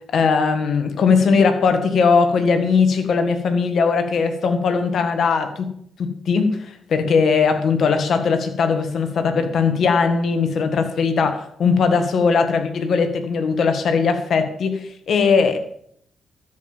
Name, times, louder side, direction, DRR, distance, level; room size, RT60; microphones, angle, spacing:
voice 1, 0.1-5.7 6.0-15.6, left 5 dB, 65° left, 7 dB, 1.7 m, -19 dB
13.0 x 5.5 x 7.3 m, 0.68 s
supercardioid pair, 55°, 0 cm